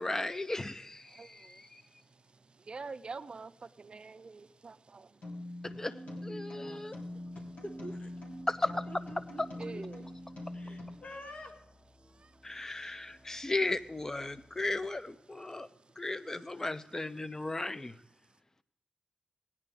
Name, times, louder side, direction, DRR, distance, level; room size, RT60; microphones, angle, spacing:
voice 1, 0.0-1.8 5.8-5.9 6.2-7.0 8.5-8.7 12.4-15.7 16.0-18.0, left 2 dB, 20° left, 0.5 m, -35 dB
voice 2, 1.1-1.7 2.5-5.2 9.6-10.0 12.1-12.3, right 4 dB, 40° right, 0.4 m, -46 dB
sound 1, 5.2-11.0, left 1 dB, 90° left, 3.1 m, -43 dB
voice 3, 5.6-7.0 7.6-8.1 8.9-9.8 10.5-11.5, equal, 55° left, 1.6 m, -48 dB
sound 2, 7.0-14.9, equal, 5° right, 1.0 m, -59 dB
17.5 x 9.8 x 3.5 m
wide cardioid pair, 125°, 2 cm